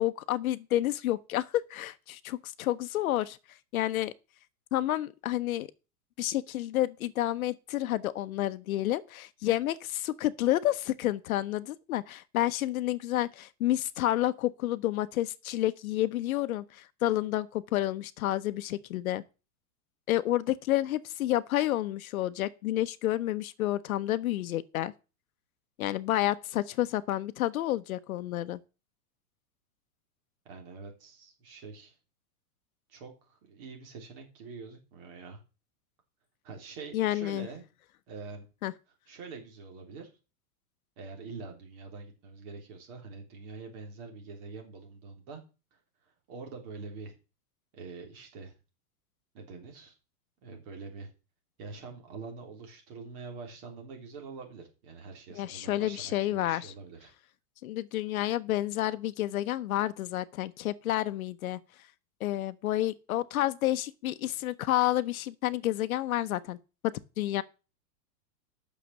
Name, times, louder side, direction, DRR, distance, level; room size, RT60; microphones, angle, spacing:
voice 1, 0.0-3.4 3.7-4.1 4.7-5.7 6.2-19.2 20.1-24.9 25.8-28.6 36.9-37.5 38.6-38.7 55.4-56.7 57.6-61.6 62.2-66.6 66.8-67.4, left 14 dB, 65° left, 0.8 m, -30 dB
voice 2, 30.5-32.0 32.9-35.4 36.4-37.6 38.1-38.5 39.1-40.1 41.0-45.4 46.0-47.2 47.7-48.5 49.3-49.9 50.4-51.1 51.6-57.1, right 4 dB, 40° right, 3.4 m, -45 dB
9.1 x 6.5 x 7.0 m
supercardioid pair, 175°, 46 cm